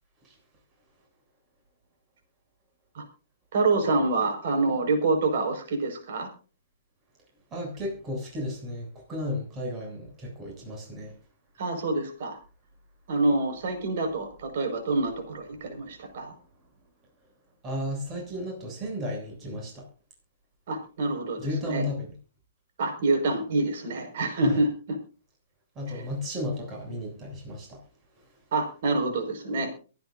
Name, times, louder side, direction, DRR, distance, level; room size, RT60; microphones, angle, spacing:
voice 1, 3.5-6.3 11.6-12.4 13.1-16.3 20.7-21.8 22.8-25.0 25.9-26.0 28.5-29.9, right 2 dB, 55° right, 5 dB, 5.6 m, -27 dB
voice 2, 7.5-11.1 17.6-19.9 21.4-22.1 24.4-24.6 25.8-27.8, left 1 dB, 25° right, 0 dB, 7.7 m, -34 dB
23.5 x 10.5 x 2.7 m, 0.36 s
figure-of-eight pair, 125°, 0 cm